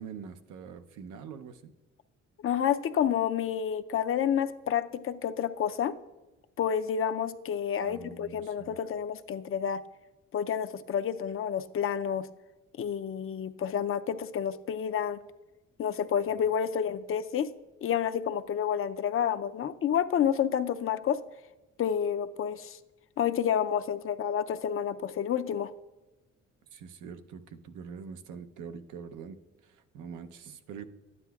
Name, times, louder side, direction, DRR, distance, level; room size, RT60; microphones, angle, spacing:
voice 1, 0.0-1.7 7.8-8.8 26.7-30.8, right 6 dB, 90° right, 8 dB, 0.7 m, -44 dB
voice 2, 2.4-5.9 6.6-9.8 10.3-12.3 12.8-15.2 15.8-17.5 17.8-21.2 21.8-22.8 23.2-25.7, left 8 dB, 45° left, 11 dB, 0.5 m, -29 dB
12.0 x 9.7 x 2.3 m, 1.1 s
cardioid pair, 90°, 30 cm